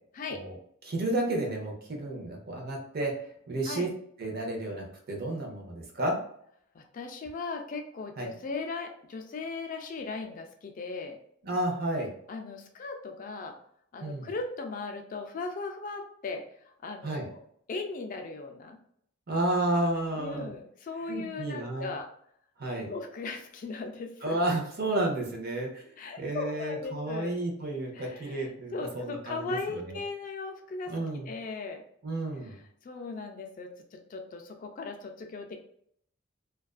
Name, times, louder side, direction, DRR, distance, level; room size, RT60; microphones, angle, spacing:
voice 1, 0.8-3.1 3.5-3.9 4.2-6.2 8.2-8.3 11.4-12.1 14.0-14.3 17.0-17.3 19.3-20.5 21.1-21.9 22.6-22.9 24.2-25.8 26.2-30.0 30.9-31.3 32.0-32.6, right 1 dB, 50° right, 1 dB, 0.6 m, -31 dB
voice 2, 6.7-11.2 12.3-13.5 13.9-16.4 16.8-17.4 17.7-18.8 20.1-22.1 22.8-24.4 26.0-27.3 27.9-31.8 32.4-35.6, left 3 dB, 40° left, 4 dB, 0.3 m, -38 dB
2.4 x 2.2 x 2.3 m, 0.66 s
head